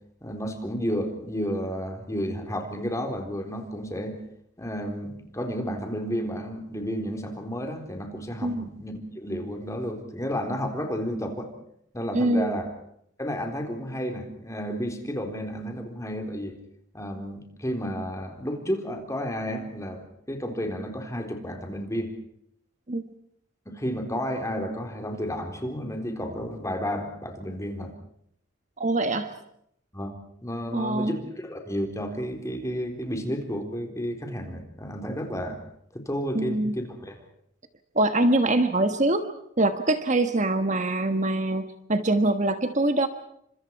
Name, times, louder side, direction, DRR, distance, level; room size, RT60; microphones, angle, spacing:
voice 1, 0.2-4.2 4.6-11.5 11.9-12.7 13.2-16.5 16.9-22.1 23.7-27.9 29.9-30.1 30.4-35.6 35.9-37.2, equal, 15° left, 4 dB, 3.9 m, -32 dB
voice 2, 12.1-12.5 22.9-23.0 28.8-29.3 30.7-31.2 36.3-36.8 37.9-39.3 39.6-43.1, right 2 dB, 35° right, 8 dB, 1.4 m, -24 dB
30.0 x 26.0 x 4.7 m, 0.72 s
head